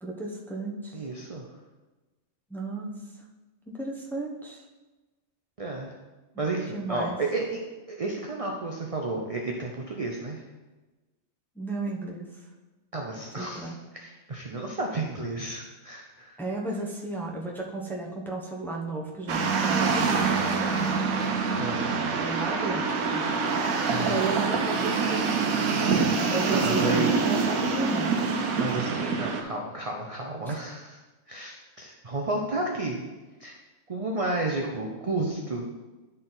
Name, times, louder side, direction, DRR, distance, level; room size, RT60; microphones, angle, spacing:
voice 1, 0.0-1.0 2.5-2.9 3.7-4.6 6.7-7.2 11.6-12.3 13.4-13.8 16.4-21.1 22.2-23.2 24.0-25.4 26.3-28.1 30.4-30.6, right 2 dB, ahead, -2 dB, 0.8 m, -33 dB
voice 2, 0.9-1.4 5.6-5.9 6.4-7.6 7.9-10.4 12.9-16.4 21.6-22.0 23.9-24.2 26.5-27.2 28.5-31.0 31.3-33.0 33.4-33.6 33.9-35.6, right 2 dB, 35° right, 0 dB, 0.6 m, -32 dB
sound 1, 19.3-29.4, right 5 dB, 85° right, 1.2 m, -26 dB
11.0 x 4.1 x 4.0 m, 1.2 s
omnidirectional pair, 1.5 m